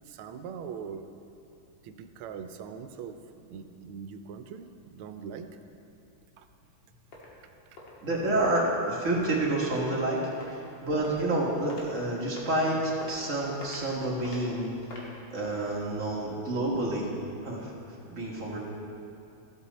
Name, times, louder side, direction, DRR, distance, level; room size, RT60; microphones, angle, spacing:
voice 1, 0.1-1.1 1.8-3.2 3.5-5.5 6.4-6.5, right 7 dB, 90° right, 8 dB, 1.5 m, -41 dB
sound 1, 6.6-6.7 7.1-7.3 7.8-7.9 8.5-8.6 9.2-9.3 9.8-9.9 10.4-10.6 11.0-11.4 11.7-11.9 12.4-12.6 13.0-13.2 13.6-13.9 14.2-14.4 14.8-15.1, left 2 dB, 65° left, 2.3 m, -44 dB
voice 2, 8.0-15.0 15.3-17.1 17.4-17.7 18.1-18.6, right 1 dB, 40° right, -4 dB, 1.8 m, -29 dB
14.0 x 8.0 x 4.1 m, 2.6 s
omnidirectional pair, 2.3 m